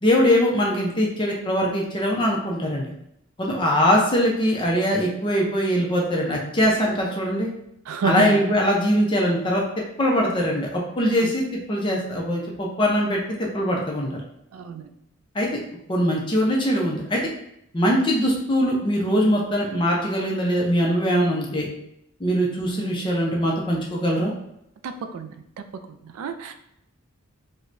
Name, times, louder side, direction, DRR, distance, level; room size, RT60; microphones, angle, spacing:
voice 1, 0.0-2.9 3.4-7.5 8.0-9.6 10.0-14.2 15.3-15.6 15.9-17.2 17.7-21.7 22.2-24.3, equal, 20° left, -2 dB, 0.5 m, -22 dB
voice 2, 7.9-8.5 11.2-11.3 14.5-14.9 24.8-26.5, right 5 dB, 80° right, 8 dB, 0.3 m, -30 dB
4.5 x 2.1 x 2.5 m, 0.77 s
head